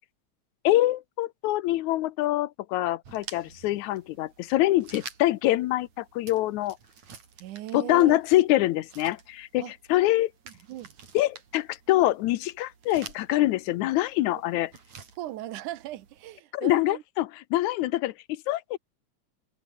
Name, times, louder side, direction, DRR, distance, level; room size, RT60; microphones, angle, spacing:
voice 1, 0.6-6.8 7.7-10.3 11.1-14.7 16.5-18.8, left 16 dB, 75° left, 2.0 m, -25 dB
sound 1, 3.0-16.4, right 6 dB, 65° right, 4.8 m, -49 dB
voice 2, 7.4-8.2 9.6-9.7 10.5-10.9 15.2-17.0, right 14 dB, 80° right, 2.5 m, -38 dB
omnidirectional pair, 3.5 m